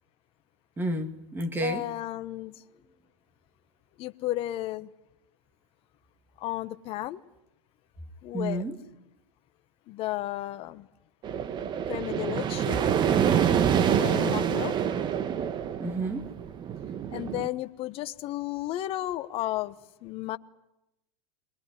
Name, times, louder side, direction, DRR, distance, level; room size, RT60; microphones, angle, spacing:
voice 1, 0.8-1.8 8.3-8.7 14.2-14.4 15.8-16.3, right 1 dB, 15° right, 7 dB, 2.2 m, -31 dB
voice 2, 1.6-2.6 4.0-4.9 6.4-7.2 8.2-8.6 9.9-10.9 11.9-12.9 13.9-14.7 17.1-19.8 20.0-20.4, left 15 dB, 40° left, 12 dB, 1.1 m, -33 dB
sound 1, 11.2-17.5, right 8 dB, 30° right, 1.3 m, -26 dB
22.5 x 22.0 x 9.9 m, 0.86 s
hypercardioid pair, 125°, 15 cm